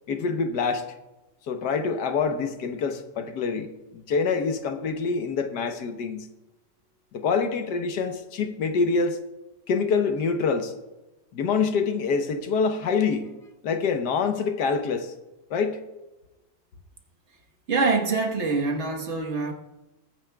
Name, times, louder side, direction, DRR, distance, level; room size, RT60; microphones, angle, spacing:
voice 1, 0.1-0.9 1.5-6.3 7.1-9.2 9.7-10.7 11.3-13.3 13.6-15.1 15.5-15.8, left 5 dB, 70° left, 1.5 m, -26 dB
voice 2, 17.7-19.5, right 3 dB, 40° right, 1.4 m, -25 dB
21.0 x 9.6 x 2.3 m
omnidirectional pair, 1.9 m